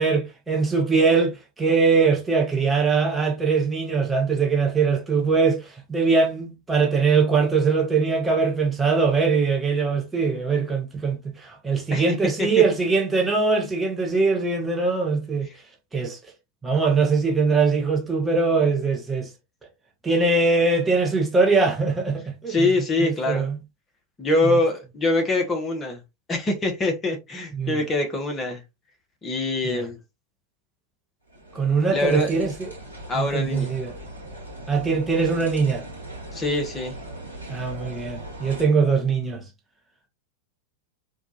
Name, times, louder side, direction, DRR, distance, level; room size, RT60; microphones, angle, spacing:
voice 1, 0.0-15.5 15.9-16.2 16.6-19.3 20.0-22.7 23.0-23.6 24.4-24.6 27.6-27.8 29.6-29.8 31.5-32.7 33.1-33.9 34.7-35.8 37.5-39.4, right 4 dB, 10° right, 0.8 m, -22 dB
voice 2, 11.9-12.5 22.5-23.5 24.2-26.0 26.3-28.6 29.2-30.0 31.9-32.4 33.1-33.7 36.3-37.0, left 2 dB, 20° left, 0.9 m, -24 dB
sound 1, 31.3-38.7, right 1 dB, 90° right, 1.2 m, -39 dB
4.2 x 2.3 x 2.8 m
figure-of-eight pair, 90°, 0 cm